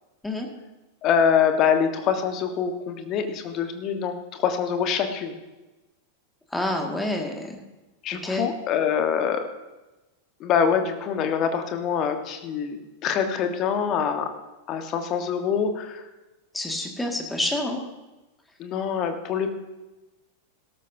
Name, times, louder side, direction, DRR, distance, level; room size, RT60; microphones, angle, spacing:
voice 1, 1.0-5.4 8.0-9.4 10.4-14.3 14.7-16.0 18.6-19.5, left 7 dB, 35° left, 6 dB, 1.6 m, -25 dB
voice 2, 6.5-7.6 8.2-8.5 16.5-17.8, left 1 dB, 5° left, 2 dB, 2.2 m, -28 dB
18.0 x 13.0 x 2.9 m, 1.1 s
figure-of-eight pair, 90°, 0 cm